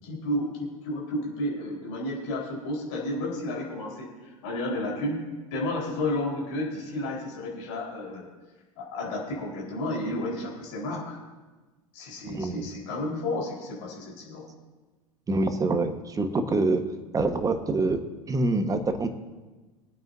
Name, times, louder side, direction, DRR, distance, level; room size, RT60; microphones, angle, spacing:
voice 1, 0.0-5.2 5.5-8.3 8.8-11.2 11.9-14.5, left 1 dB, 60° left, -3 dB, 4.3 m, -32 dB
voice 2, 12.3-12.7 15.3-16.9 17.1-18.0 18.3-19.1, right 2 dB, 20° right, 8 dB, 1.3 m, -25 dB
24.5 x 9.1 x 2.7 m, 1.2 s
figure-of-eight pair, 80°, 18 cm